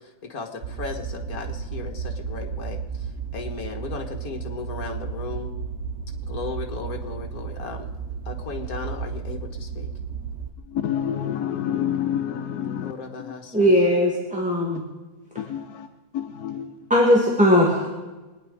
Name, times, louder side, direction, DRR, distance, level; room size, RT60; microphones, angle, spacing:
voice 1, 0.2-5.5 6.3-7.9 8.3-9.9 12.8-13.8, left 4 dB, 70° left, 3 dB, 2.0 m, -36 dB
sound 1, 0.6-10.5, right 6 dB, 50° right, 1.2 m, -33 dB
voice 2, 10.7-12.9 13.2-13.3 15.4-15.9 16.1-16.7, left 9 dB, 90° left, 7 dB, 1.3 m, -28 dB
voice 3, 13.5-14.8 16.9-17.9, equal, 5° right, -3 dB, 2.2 m, -19 dB
23.5 x 10.0 x 5.0 m, 1.2 s
omnidirectional pair, 1.6 m